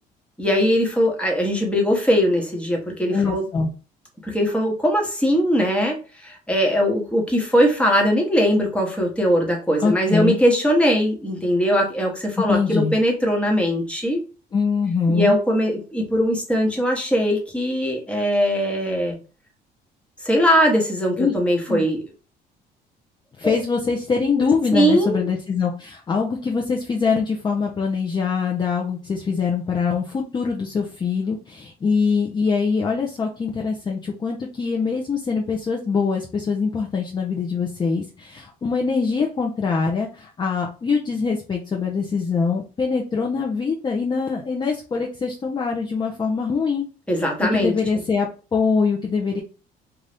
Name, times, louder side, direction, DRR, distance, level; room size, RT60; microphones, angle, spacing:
voice 1, 0.4-3.5 4.2-14.2 15.1-19.2 20.2-22.0 23.4-23.5 24.7-25.3 47.1-47.7, equal, 5° left, 0 dB, 1.0 m, -20 dB
voice 2, 3.1-3.7 9.8-10.4 12.5-13.0 14.5-15.4 21.2-21.3 21.7-21.9 23.4-46.8 47.4-49.4, left 5 dB, 25° left, 0 dB, 0.5 m, -23 dB
2.6 x 2.3 x 3.3 m, 0.35 s
cardioid pair, 110°, 17 cm